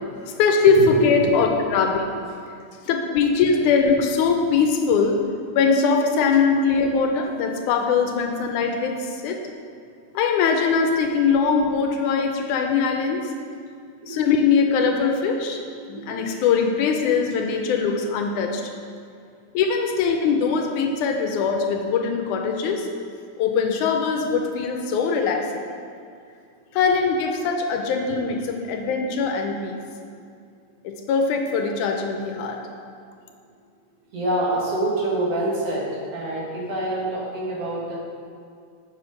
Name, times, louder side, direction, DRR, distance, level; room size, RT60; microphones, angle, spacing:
voice 1, 0.4-2.0 2.9-5.2 5.5-8.9 9.2-9.4 10.1-13.2 14.1-15.6 15.9-18.6 19.5-22.9 23.4-25.7 26.7-29.8 30.8-32.6, left 5 dB, 80° left, 3 dB, 2.1 m, -21 dB
voice 2, 34.1-35.9 36.1-38.0, right 1 dB, 60° right, -5 dB, 2.2 m, -26 dB
8.1 x 5.9 x 5.0 m, 2.3 s
omnidirectional pair, 3.6 m